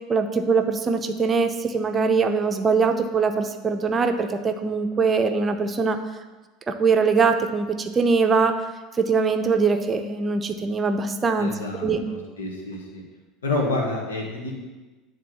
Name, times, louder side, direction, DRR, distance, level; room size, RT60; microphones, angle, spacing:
voice 1, 0.0-6.0 6.7-8.5 9.0-11.5 11.8-12.0, right 5 dB, 25° right, 7 dB, 0.7 m, -22 dB
voice 2, 11.4-13.0 13.4-14.6, left 2 dB, 75° left, -1 dB, 1.7 m, -28 dB
10.5 x 3.6 x 7.1 m, 1.2 s
figure-of-eight pair, 70°, 0 cm